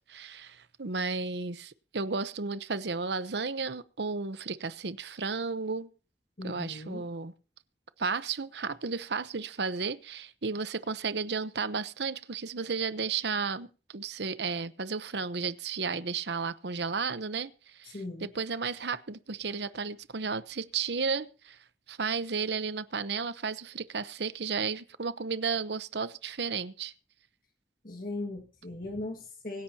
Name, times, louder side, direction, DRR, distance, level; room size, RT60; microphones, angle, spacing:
voice 1, 0.1-5.9 6.4-7.3 8.0-21.6 21.9-26.9, right 5 dB, 80° right, 0.9 m, -33 dB
voice 2, 6.4-7.0 17.9-18.3 27.8-29.6, left 2 dB, 50° left, 1.8 m, -38 dB
25.0 x 10.5 x 2.8 m
head